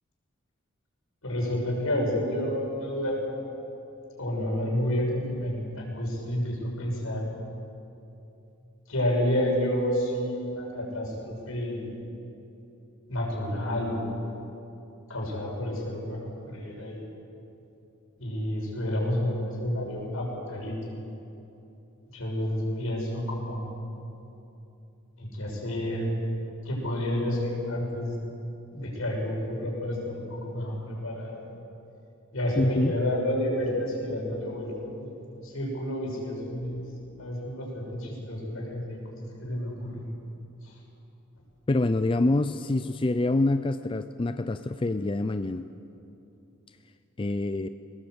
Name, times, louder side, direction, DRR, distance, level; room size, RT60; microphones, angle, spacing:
voice 1, 1.2-3.4 4.2-7.3 8.9-11.9 13.1-14.3 15.1-17.0 18.2-20.8 22.1-23.6 25.2-26.1 26.6-28.1 28.7-31.5 32.3-36.9 37.2-40.0 40.6-40.7, left 1 dB, 80° left, -1 dB, 6.4 m, -30 dB
voice 2, 32.6-32.9 41.7-45.6 47.2-47.7, left 2 dB, 25° left, 10 dB, 0.4 m, -26 dB
21.5 x 19.0 x 8.0 m, 2.8 s
head